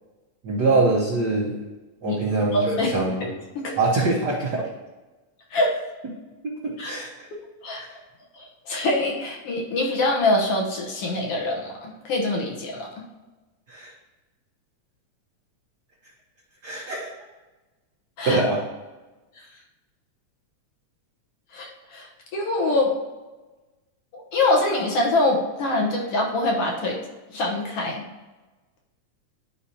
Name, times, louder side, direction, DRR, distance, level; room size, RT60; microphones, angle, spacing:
voice 1, 0.4-1.6 2.0-3.2 3.8-4.6 6.4-7.3 7.8-7.9 13.7-13.9 16.6-17.1 18.2-18.6, right 3 dB, 65° right, -4 dB, 1.0 m, -23 dB
voice 2, 2.5-2.9 3.2-3.7 5.5-5.8 6.8-6.9 7.6-8.0 8.3-12.9 18.2-18.4 21.5-22.9 24.1-27.0 27.3-28.0, left 2 dB, 60° left, -1 dB, 1.9 m, -24 dB
11.5 x 5.0 x 2.8 m, 1.2 s
omnidirectional pair, 3.3 m